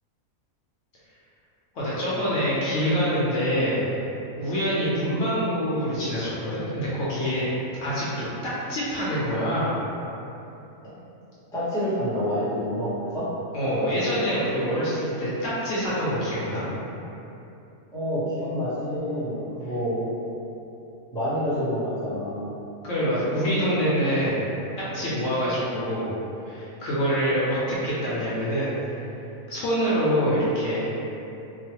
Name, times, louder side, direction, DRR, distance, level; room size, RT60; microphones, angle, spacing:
voice 1, 1.7-3.8 4.4-7.5 7.8-9.8 13.5-16.6 22.8-24.4 24.8-26.1 26.5-28.7 29.5-30.9, equal, 65° left, -9 dB, 0.9 m, -25 dB
voice 2, 11.5-13.3 17.9-20.0 21.1-22.5, equal, 5° left, -12 dB, 0.7 m, -27 dB
3.0 x 2.2 x 2.9 m, 2.9 s
omnidirectional pair, 1.5 m